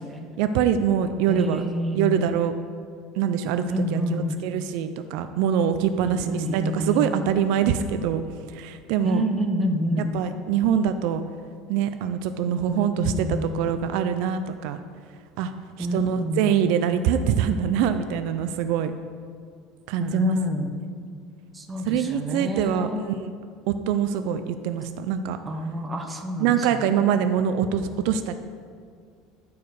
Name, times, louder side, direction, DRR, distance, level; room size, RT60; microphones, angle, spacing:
voice 1, 0.4-1.6 1.9-2.5 3.2-3.6 3.9-8.2 8.5-9.3 10.1-11.2 11.7-14.8 15.4-15.5 15.8-18.9 19.9-20.4 21.9-23.3 23.7-25.4 26.4-28.4, right 8 dB, 60° right, 9 dB, 0.4 m, -24 dB
voice 2, 1.3-2.5 3.7-4.4 6.0-7.1 9.0-10.1 12.7-13.5 15.8-16.6 20.0-20.9 21.5-23.0 25.4-27.0, equal, 10° right, 3 dB, 0.6 m, -28 dB
11.0 x 4.6 x 4.8 m, 2.1 s
cardioid pair, 165°, 0 cm